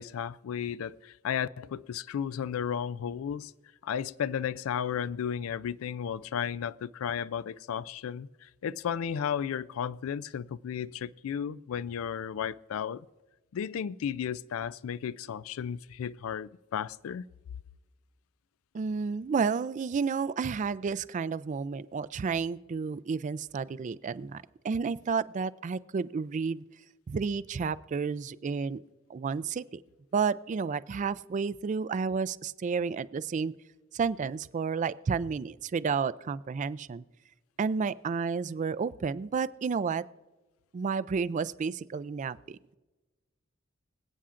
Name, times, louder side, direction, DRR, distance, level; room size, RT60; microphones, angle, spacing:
voice 1, 0.0-3.5 3.8-13.1 13.5-17.3, left 8 dB, 85° left, 0.3 m, -34 dB
voice 2, 18.7-26.6 27.1-28.8 29.1-29.8 30.1-33.5 33.9-37.0 37.6-40.0 40.7-42.7, right 5 dB, 35° right, 0.3 m, -31 dB
25.5 x 8.6 x 2.5 m
head